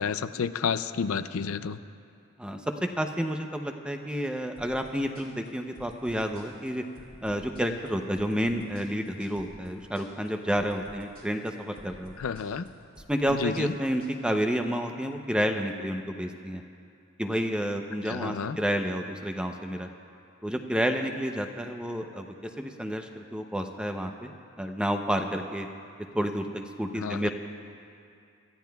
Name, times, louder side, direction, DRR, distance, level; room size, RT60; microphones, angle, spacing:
voice 1, 0.0-1.8 12.2-12.7 13.3-13.7 18.1-18.6 27.0-27.3, left 6 dB, 85° left, 12 dB, 0.4 m, -30 dB
voice 2, 3.0-6.8 7.2-12.1 13.1-16.6 17.2-19.9 20.4-24.3 24.6-25.7 26.1-27.3, equal, 5° right, 4 dB, 0.6 m, -30 dB
sound 1, 4.6-14.1, equal, 25° right, 2.5 m, -52 dB
27.0 x 14.0 x 2.3 m, 2.4 s
head